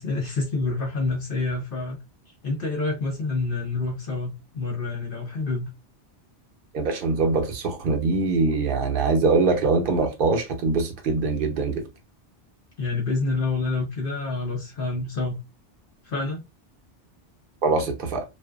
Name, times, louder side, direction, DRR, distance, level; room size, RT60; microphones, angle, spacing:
voice 1, 0.0-2.0 2.4-5.7 12.8-15.4 16.0-16.4, left 3 dB, 55° left, 0.8 m, -27 dB
voice 2, 6.7-11.8 17.6-18.2, right 3 dB, 55° right, 0.8 m, -23 dB
2.5 x 2.2 x 2.2 m
omnidirectional pair, 1.2 m